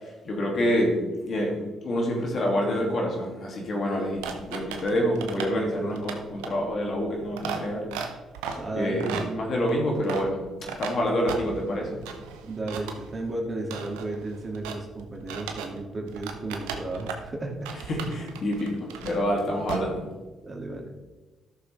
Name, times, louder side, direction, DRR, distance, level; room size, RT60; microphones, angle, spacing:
voice 1, 0.2-1.0 1.2-7.8 8.8-12.0 17.9-20.0, equal, 60° left, 0 dB, 2.7 m, -27 dB
sound 1, 4.2-15.8 16.1-17.3 17.7-19.4 19.6-19.8, right 6 dB, 90° right, 0.8 m, -37 dB
voice 2, 5.2-5.9 8.6-9.4 12.5-17.6 20.4-20.9, right 2 dB, 35° right, 0 dB, 2.5 m, -34 dB
12.5 x 6.8 x 3.5 m, 1.2 s
hypercardioid pair, 55°, 0 cm